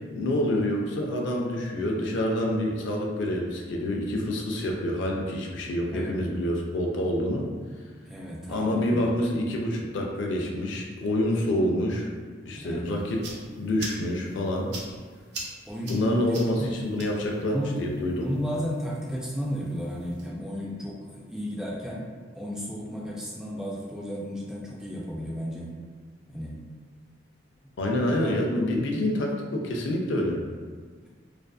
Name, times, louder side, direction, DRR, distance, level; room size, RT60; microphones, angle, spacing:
voice 1, 0.1-7.4 8.5-12.1 12.5-13.2 13.5-14.7 15.9-18.3 27.8-30.4, left 1 dB, 75° left, 0 dB, 0.4 m, -27 dB
voice 2, 8.1-9.0 12.6-13.0 15.6-16.7 17.4-17.8 18.1-22.1 22.3-25.7 26.3-26.6 28.2-28.3 31.0-31.1, equal, 5° right, -5 dB, 0.3 m, -33 dB
sound 1, 12.8-20.3, right 2 dB, 60° right, 0.5 m, -44 dB
2.5 x 2.3 x 2.3 m, 1.5 s
head